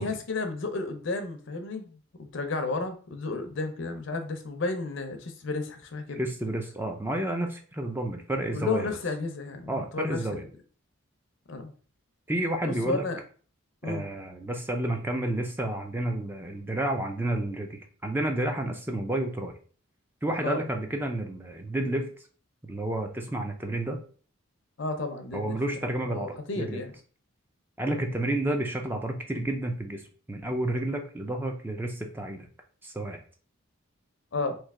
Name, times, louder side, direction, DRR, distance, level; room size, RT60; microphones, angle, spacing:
voice 1, 0.0-6.2 8.5-10.5 11.5-11.7 12.6-13.2 13.8-14.0 20.4-20.6 24.8-25.6 26.1-26.9 34.3-34.6, left 3 dB, 60° left, 7 dB, 0.6 m, -32 dB
voice 2, 6.1-9.0 9.7-10.4 12.3-13.0 13.8-19.6 20.2-22.1 22.6-24.0 25.3-26.8 27.8-30.0 30.3-32.5 32.8-33.2, right 1 dB, 10° right, 4 dB, 0.4 m, -30 dB
3.2 x 2.7 x 3.6 m, 0.41 s
head